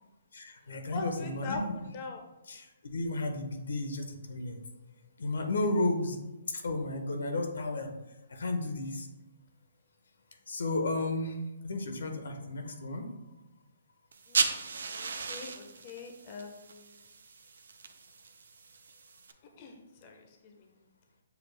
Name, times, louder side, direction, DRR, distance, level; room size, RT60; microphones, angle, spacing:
voice 1, 0.3-1.8 2.5-4.6 5.2-6.2 6.5-7.9 8.3-9.1 10.5-11.4 11.6-13.1, left 2 dB, 85° left, 5 dB, 0.7 m, -33 dB
voice 2, 0.9-2.2 14.3-14.5 15.0-17.0 19.6-20.7, left 3 dB, 35° left, 4 dB, 0.5 m, -42 dB
sound 1, 14.1-19.3, right 4 dB, 80° right, 0.4 m, -36 dB
6.9 x 2.3 x 3.3 m, 0.99 s
hypercardioid pair, 155°, 0 cm